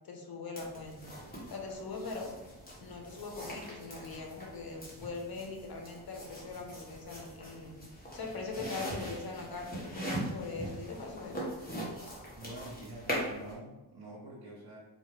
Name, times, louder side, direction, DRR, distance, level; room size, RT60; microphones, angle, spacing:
voice 1, 0.0-1.2 1.5-2.3 2.8-11.5, left 3 dB, 50° left, 2 dB, 0.9 m, -41 dB
sound 1, 0.6-13.5, equal, 20° left, 1.4 m, -41 dB
voice 2, 12.4-14.8, right 1 dB, 55° right, -6 dB, 1.0 m, -46 dB
4.3 x 2.4 x 3.3 m, 1.0 s
cardioid pair, 65°, 46 cm